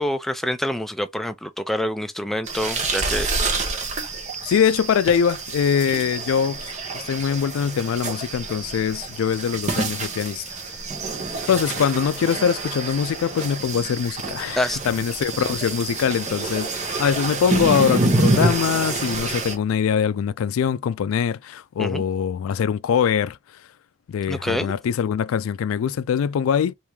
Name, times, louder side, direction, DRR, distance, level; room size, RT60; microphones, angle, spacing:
voice 1, 0.0-3.3 14.6-14.8 21.8-22.0 24.3-24.7, left 1 dB, ahead, 0.3 m, -26 dB
canoe in flooded forest, 2.5-19.6, right 3 dB, 35° right, 0.8 m, -27 dB
voice 2, 4.4-10.6 11.5-23.4 24.1-26.7, left 7 dB, 85° left, 0.3 m, -23 dB
3.5 x 2.6 x 2.9 m
head